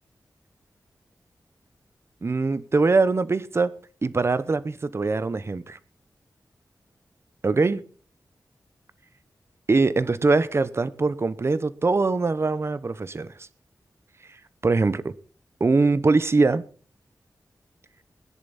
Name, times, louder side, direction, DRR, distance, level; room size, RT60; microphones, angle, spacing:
voice 1, 2.2-3.7 4.0-5.8 7.4-7.8 9.7-13.5 14.6-15.1 15.6-16.6, right 3 dB, 40° right, 0.9 m, -22 dB
19.5 x 10.5 x 4.2 m
wide cardioid pair, 115°, 7 cm